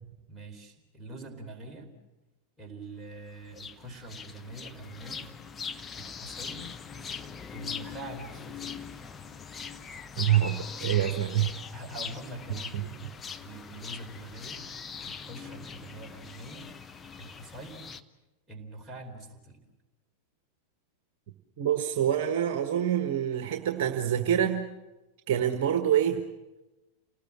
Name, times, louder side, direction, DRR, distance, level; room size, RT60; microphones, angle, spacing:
voice 1, 0.3-1.9 2.6-5.3 5.9-6.8 7.5-8.8 11.7-14.7 15.0-16.7 17.2-17.9 18.5-19.6, right 2 dB, 10° right, 0 dB, 4.3 m, -44 dB
sound 1, 3.5-18.0, left 6 dB, 20° left, 0.9 m, -41 dB
voice 2, 10.2-11.6 12.7-12.9 21.6-24.7 25.3-26.2, right 10 dB, 50° right, 6 dB, 1.4 m, -26 dB
29.0 x 19.0 x 7.5 m, 1.1 s
figure-of-eight pair, 90°, 0 cm